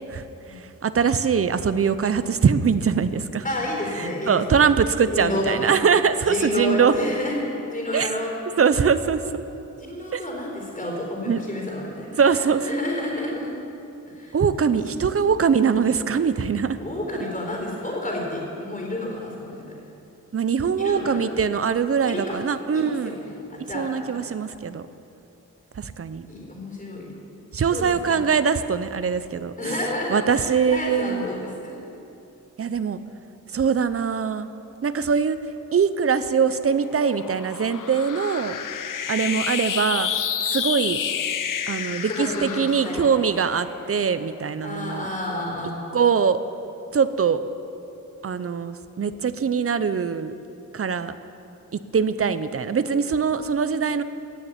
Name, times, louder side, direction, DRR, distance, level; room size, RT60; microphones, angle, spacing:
voice 1, 0.5-3.4 4.0-6.9 7.9-8.1 8.6-9.4 10.1-10.2 11.3-11.4 12.2-12.6 14.3-16.8 20.3-23.1 23.7-24.8 25.8-26.3 27.5-29.5 30.1-31.3 32.6-33.0 33.5-34.5 34.8-35.4 35.7-38.6 39.1-40.1 40.5-41.0 41.7-45.1 45.9-46.4 46.9-47.4 48.2-50.3 50.7-51.1 51.9-54.0, right 6 dB, 45° right, 12 dB, 0.7 m, -22 dB
voice 2, 3.4-4.7 5.1-5.7 6.2-7.3 7.7-8.3 9.9-13.5 14.1-14.4 14.9-15.1 16.8-19.7 20.8-21.2 22.0-22.4 22.7-24.2 26.3-27.1 27.7-28.2 29.6-31.7 42.1-43.1 44.6-45.8, left 1 dB, 25° left, -1 dB, 4.1 m, -30 dB
sound 1, 36.1-44.7, left 8 dB, 80° left, 0.7 m, -30 dB
16.5 x 7.0 x 9.1 m, 2.9 s
wide cardioid pair, 100°, 32 cm